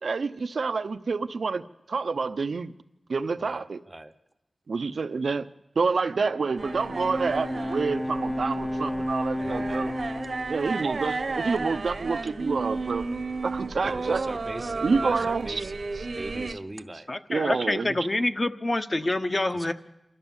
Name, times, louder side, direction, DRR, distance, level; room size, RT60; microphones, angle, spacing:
voice 1, 0.0-1.6 1.9-2.7 3.1-3.8 4.7-5.5 5.8-9.9 10.5-13.1 13.4-14.3 14.8-15.6 15.9-16.1 16.5-16.6 17.3-18.1 19.4-19.5, right 4 dB, 90° right, 0.7 m, -28 dB
voice 2, 3.4-4.1 9.4-10.0 12.6-13.2 13.8-15.7 16.1-17.1 19.5-19.7, right 1 dB, 20° right, 0.7 m, -41 dB
Bowed string instrument, 6.1-11.6, left 1 dB, 20° left, 0.6 m, -33 dB
sound 1, 6.6-16.5, right 3 dB, 65° right, 1.0 m, -33 dB
voice 3, 17.1-19.7, left 2 dB, 35° left, 1.0 m, -27 dB
28.5 x 12.5 x 7.2 m
wide cardioid pair, 100°, 0 cm